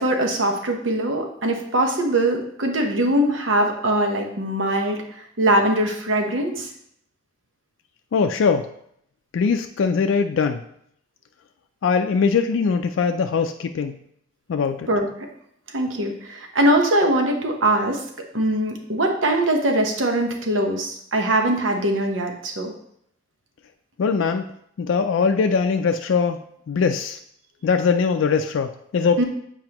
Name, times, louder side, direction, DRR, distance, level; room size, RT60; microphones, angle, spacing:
voice 1, 0.0-6.7 14.9-15.1 15.7-18.0 18.3-22.7 29.2-29.3, right 1 dB, 85° right, 3 dB, 1.0 m, -22 dB
voice 2, 8.1-8.7 9.3-10.6 11.8-14.0 14.5-14.9 24.0-24.5 24.8-27.2 27.6-29.2, left 5 dB, 80° left, 6 dB, 0.4 m, -21 dB
7.7 x 4.7 x 2.9 m, 0.69 s
head